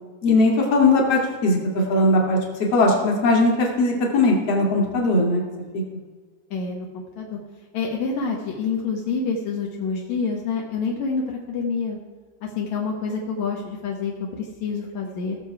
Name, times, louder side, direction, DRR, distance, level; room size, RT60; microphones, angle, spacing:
voice 1, 0.2-1.6 1.9-2.4 2.7-5.4 5.7-5.8, left 2 dB, 45° left, 0 dB, 2.2 m, -19 dB
voice 2, 6.5-7.4 7.7-12.0 12.4-15.4, left 5 dB, 75° left, -1 dB, 1.6 m, -27 dB
17.5 x 6.9 x 4.7 m, 1.5 s
omnidirectional pair, 5.2 m